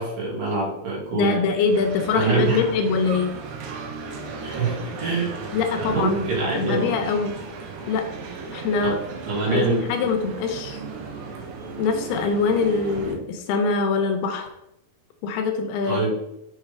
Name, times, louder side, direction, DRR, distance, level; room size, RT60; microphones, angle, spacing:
voice 1, 0.0-1.5 2.1-2.6 4.3-5.5 5.8-6.9 8.8-8.9 9.3-9.8 15.8-16.1, right 3 dB, 60° right, -4 dB, 3.5 m, -25 dB
voice 2, 1.1-3.3 5.5-6.3 6.6-7.3 7.9-8.1 8.5-9.0 9.5-10.8 11.8-14.5 15.2-16.1, left 4 dB, 80° left, 5 dB, 2.7 m, -23 dB
sound 1, 1.7-13.2, right 4 dB, 85° right, 3.0 m, -35 dB
6.7 x 5.8 x 3.3 m, 0.85 s
omnidirectional pair, 4.7 m